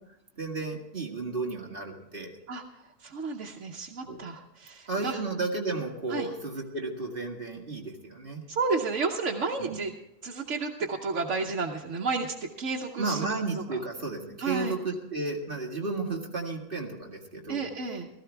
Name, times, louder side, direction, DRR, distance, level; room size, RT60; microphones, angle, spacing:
voice 1, 0.4-2.3 4.1-4.2 4.9-8.4 9.6-9.8 13.0-17.6, right 3 dB, 45° right, 1 dB, 2.1 m, -33 dB
voice 2, 3.0-5.2 6.1-6.3 8.5-9.9 10.2-13.2 14.4-14.8 17.5-18.1, right 4 dB, 75° right, -1 dB, 1.4 m, -31 dB
16.5 x 15.0 x 3.4 m, 0.94 s
omnidirectional pair, 1.3 m